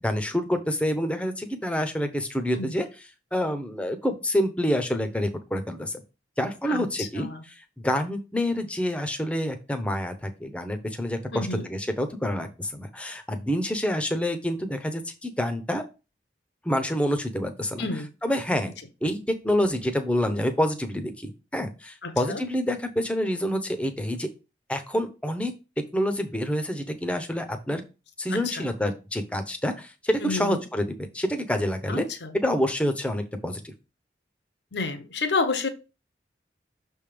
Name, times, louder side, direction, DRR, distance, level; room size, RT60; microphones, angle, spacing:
voice 1, 0.0-2.9 3.3-6.0 6.4-15.8 16.6-17.8 18.2-18.7 19.0-24.3 24.7-25.5 25.8-27.8 28.2-32.0 32.4-33.7, equal, 5° left, 0.7 m, -27 dB
voice 2, 6.7-7.4 11.3-11.6 17.8-18.1 22.0-22.4 28.3-28.6 30.2-30.6 31.9-32.4 34.7-35.7, left 3 dB, 80° left, 0.9 m, -30 dB
6.5 x 3.5 x 5.0 m
head